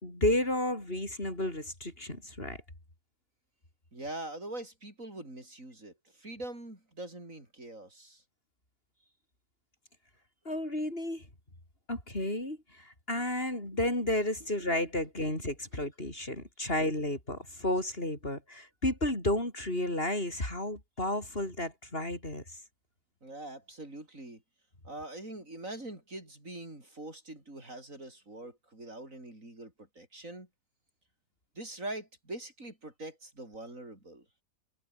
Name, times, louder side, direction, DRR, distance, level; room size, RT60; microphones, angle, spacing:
voice 1, 0.0-2.6 10.4-11.3 11.9-22.6, left 1 dB, 40° left, 6.5 m, -32 dB
voice 2, 3.9-8.2 23.2-24.4 24.8-30.5 31.6-34.3, right 1 dB, 60° right, 7.3 m, -43 dB
omnidirectional pair, 1.5 m